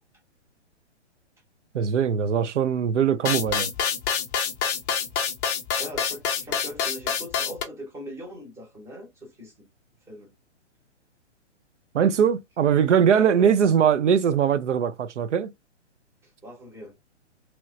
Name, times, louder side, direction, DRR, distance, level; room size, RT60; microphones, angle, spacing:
voice 1, 1.7-3.7 11.9-15.5, right 8 dB, 80° right, 0.5 m, -21 dB
sound 1, 3.2-7.6, left 7 dB, 20° left, 0.4 m, -26 dB
voice 2, 5.8-9.7 10.1-10.3 13.1-13.5 16.2-17.0, equal, 5° right, 0.8 m, -40 dB
3.0 x 3.0 x 2.3 m
hypercardioid pair, 130°, 35 cm